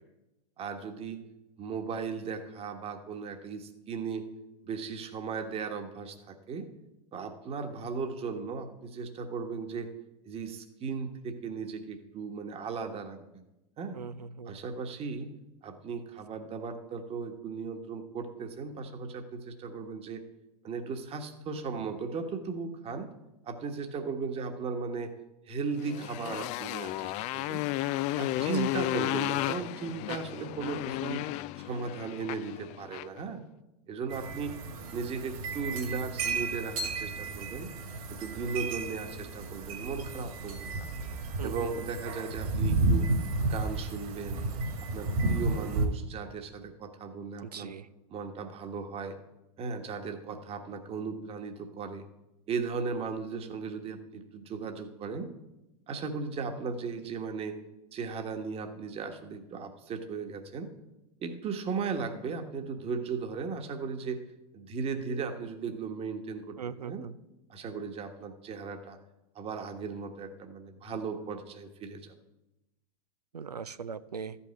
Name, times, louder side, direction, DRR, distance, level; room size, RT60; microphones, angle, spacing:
voice 1, 0.6-1.2 1.6-4.2 4.6-6.7 7.1-9.9 10.2-13.4 13.8-14.0 14.5-15.3 15.6-20.2 20.6-23.1 23.4-25.1 25.5-27.6 28.2-31.3 31.6-33.4 33.9-34.6 34.9-37.7 38.2-40.9 41.4-43.1 43.5-44.4 44.8-47.7 48.1-49.2 49.6-52.0 52.5-55.3 55.9-57.6 57.9-60.7 61.2-64.2 64.5-67.0 67.5-69.0 69.3-72.2, right 5 dB, 30° right, 6 dB, 1.4 m, -36 dB
voice 2, 13.9-14.6 28.4-28.8 41.4-41.8 47.4-47.9 66.6-67.1 73.3-74.4, right 6 dB, 85° right, 14 dB, 0.6 m, -40 dB
Motorcycle, 25.8-33.2, left 16 dB, 40° left, 0.4 m, -33 dB
sound 1, 34.1-45.9, right 3 dB, 60° right, 2.4 m, -32 dB
13.5 x 5.6 x 8.2 m, 0.96 s
figure-of-eight pair, 90°, 20 cm